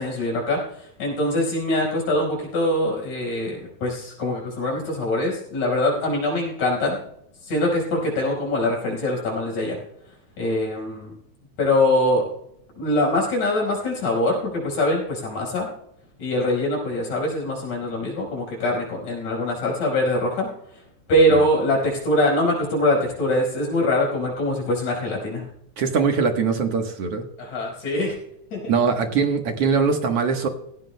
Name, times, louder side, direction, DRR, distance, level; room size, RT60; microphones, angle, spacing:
voice 1, 0.0-7.0 7.4-9.8 10.4-11.1 11.6-12.2 12.8-15.7 16.2-20.5 20.7-20.8 21.1-25.4 27.4-28.2 28.5-28.7, left 1 dB, 85° left, -2 dB, 6.2 m, -23 dB
voice 2, 25.8-27.2 28.7-30.5, right 5 dB, 60° right, 4 dB, 2.1 m, -22 dB
18.0 x 17.5 x 2.2 m, 0.73 s
omnidirectional pair, 3.4 m